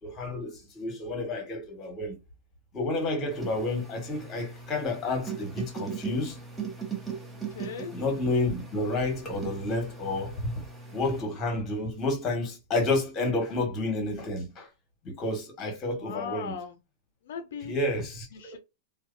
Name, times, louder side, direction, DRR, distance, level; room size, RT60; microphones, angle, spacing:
voice 1, 0.0-2.1 2.7-6.4 7.9-10.6 10.9-14.7 15.0-16.6 17.6-18.6, left 2 dB, 25° left, 1.3 m, -30 dB
sound 1, 3.3-11.2, right 6 dB, 5° right, 0.7 m, -39 dB
voice 2, 7.3-7.9 16.0-16.8 17.3-17.7 18.3-18.6, left 7 dB, 75° left, 0.4 m, -38 dB
2.5 x 2.2 x 2.5 m
hypercardioid pair, 125°, 0 cm